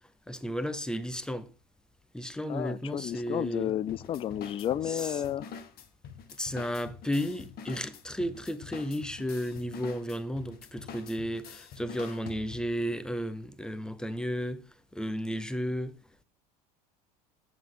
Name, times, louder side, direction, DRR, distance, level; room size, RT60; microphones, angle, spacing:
voice 1, 0.3-1.5 2.1-3.7 4.9-5.2 6.4-14.7 14.9-16.0, equal, 5° left, 0.8 m, -33 dB
voice 2, 2.5-5.5, left 10 dB, 25° left, 0.4 m, -32 dB
sound 1, 3.9-12.8, left 6 dB, 50° left, 1.2 m, -46 dB
8.2 x 7.2 x 3.8 m
supercardioid pair, 105°, 20 cm